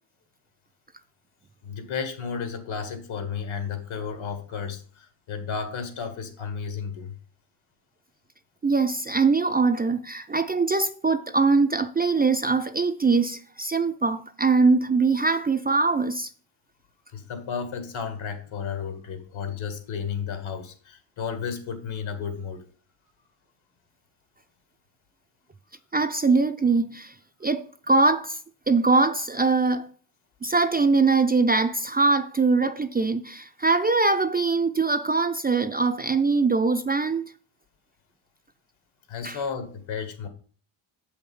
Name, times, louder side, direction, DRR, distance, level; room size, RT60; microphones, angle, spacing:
voice 1, 1.6-7.1 17.1-22.7 39.1-40.3, left 6 dB, 75° left, 2.1 m, -33 dB
voice 2, 8.6-16.3 25.9-27.1 27.4-28.4 28.7-29.9 30.4-37.3 39.2-39.4, right 4 dB, 20° right, 0.4 m, -22 dB
7.6 x 5.7 x 5.5 m
cardioid pair, 105°, 48 cm